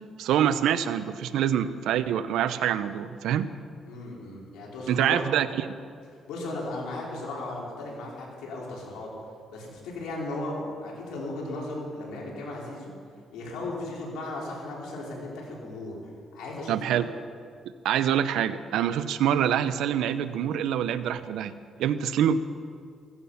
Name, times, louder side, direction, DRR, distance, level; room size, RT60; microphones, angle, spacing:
voice 1, 0.2-3.5 4.9-5.7 16.7-17.1 17.8-21.5 21.8-22.4, right 10 dB, 85° right, 13 dB, 0.7 m, -25 dB
voice 2, 3.8-5.2 6.3-9.1 9.5-12.9 13.3-16.0 16.3-17.1, left 2 dB, 90° left, -3 dB, 4.6 m, -36 dB
16.0 x 15.0 x 5.7 m, 2.2 s
cardioid pair, 90°, 0 cm